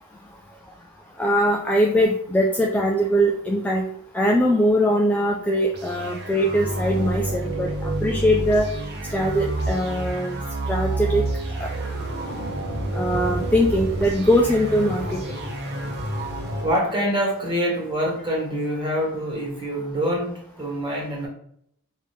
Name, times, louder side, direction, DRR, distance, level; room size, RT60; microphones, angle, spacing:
voice 1, 1.2-3.8 4.1-8.7 9.1-10.4 10.7-11.2 11.6-11.7 12.9-15.2, equal, 5° left, 0 dB, 0.3 m, -21 dB
sound 1, 5.7-16.8, right 1 dB, 50° right, 0.9 m, -29 dB
voice 2, 16.6-21.3, equal, 20° right, -2 dB, 1.5 m, -25 dB
5.0 x 2.7 x 3.4 m, 0.69 s
head